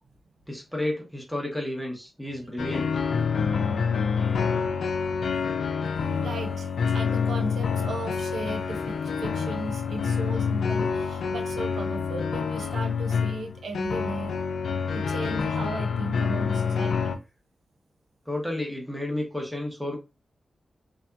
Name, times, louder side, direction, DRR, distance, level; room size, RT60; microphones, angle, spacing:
voice 1, 0.5-2.9 18.3-20.0, left 1 dB, ahead, 0.7 m, -31 dB
sound 1, 2.6-17.2, left 5 dB, 85° left, 0.4 m, -27 dB
voice 2, 6.2-14.3 14.9-17.1, right 2 dB, 90° right, 0.4 m, -36 dB
2.7 x 2.3 x 2.2 m
wide cardioid pair, 125°, 0 cm